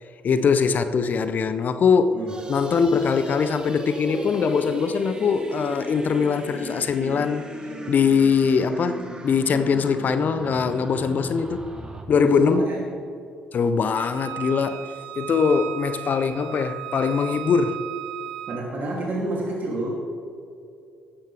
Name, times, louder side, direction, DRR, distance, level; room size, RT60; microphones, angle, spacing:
voice 1, 0.2-7.4 7.9-11.7 12.1-12.6 13.5-17.8, left 6 dB, 50° left, 0.7 m, -22 dB
sound 1, 2.3-12.0, right 1 dB, 25° right, 2.2 m, -36 dB
voice 2, 12.1-12.8 18.5-19.9, right 2 dB, 55° right, 2.8 m, -27 dB
Wind instrument woodwind instrument, 13.9-18.6, right 14 dB, 85° right, 0.4 m, -35 dB
14.5 x 12.5 x 3.4 m
hypercardioid pair, 50°, 4 cm